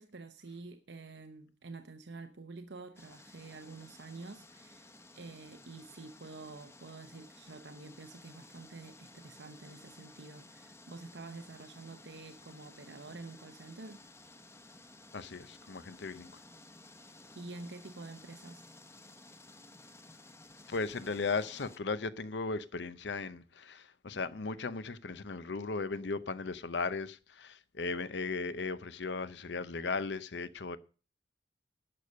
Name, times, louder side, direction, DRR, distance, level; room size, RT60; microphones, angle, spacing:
voice 1, 0.0-14.0 17.0-18.7, right 3 dB, 70° right, 0.9 m, -48 dB
sound 1, 3.0-21.8, left 2 dB, 15° left, 0.9 m, -56 dB
voice 2, 15.1-16.3 20.7-30.8, left 4 dB, 75° left, 0.7 m, -37 dB
11.0 x 6.8 x 6.5 m
head